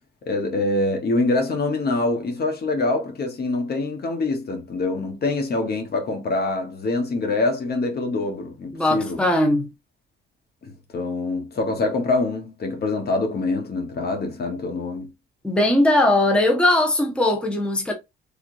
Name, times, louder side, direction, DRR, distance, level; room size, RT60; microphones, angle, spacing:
voice 1, 0.3-9.2 10.6-15.1, left 2 dB, 55° left, 1.2 m, -25 dB
voice 2, 8.7-9.7 15.4-17.9, left 1 dB, 5° left, 0.9 m, -19 dB
3.4 x 3.1 x 2.6 m
cardioid pair, 90°, 20 cm